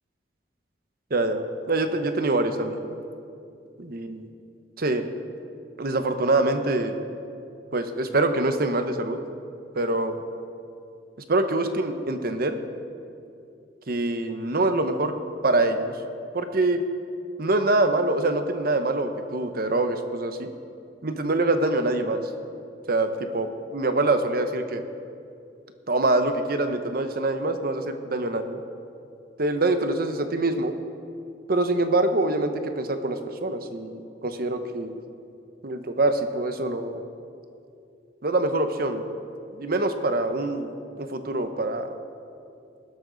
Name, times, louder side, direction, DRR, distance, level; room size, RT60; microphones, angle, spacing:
voice 1, 1.1-3.0 3.8-4.3 4.8-5.1 5.8-6.9 7.7-9.2 9.7-10.2 11.3-12.6 13.9-15.1 15.4-15.9 16.3-16.8 17.4-20.5 21.0-22.2 22.9-24.8 25.9-28.6 29.4-30.7 31.5-35.0 35.6-37.0 38.2-39.0 39.6-40.7 41.0-41.9, right 2 dB, 60° right, 8 dB, 1.0 m, -25 dB
19.5 x 12.5 x 4.0 m, 2.6 s
head